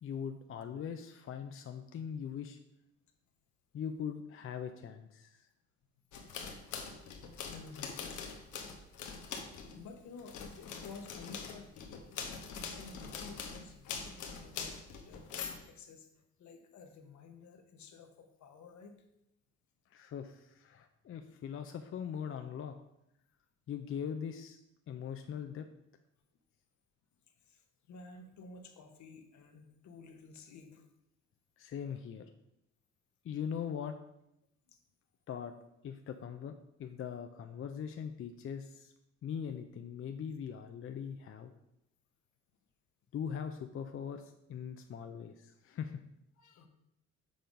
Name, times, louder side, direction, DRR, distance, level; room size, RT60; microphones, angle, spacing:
voice 1, 0.0-2.6 3.7-5.5 19.9-22.7 23.7-25.7 31.6-32.3 33.2-34.0 35.3-35.5 35.8-36.5 36.8-38.9 39.2-41.5 43.1-46.0, left 7 dB, 45° left, 7 dB, 0.5 m, -41 dB
sound 1, 6.1-9.8 10.2-15.6, left 6 dB, 85° left, 1.0 m, -43 dB
voice 2, 7.4-8.3 9.7-12.2 12.7-14.7 15.0-15.3 15.6-16.1 16.4-18.9 27.4-30.9 34.7-34.8 46.4-46.7, left 4 dB, 70° left, 5 dB, 1.1 m, -52 dB
6.8 x 3.8 x 5.2 m, 0.81 s
cardioid pair, 90°, 30 cm